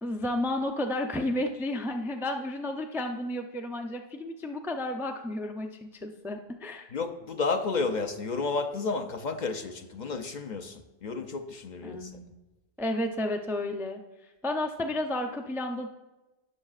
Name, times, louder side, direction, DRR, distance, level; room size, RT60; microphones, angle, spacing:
voice 1, 0.0-6.9 11.8-12.3 12.8-14.0 14.4-15.9, left 1 dB, 5° right, 0.3 m, -32 dB
voice 2, 6.9-12.2, left 4 dB, 55° left, 0.6 m, -32 dB
17.5 x 6.5 x 2.4 m
omnidirectional pair, 1.0 m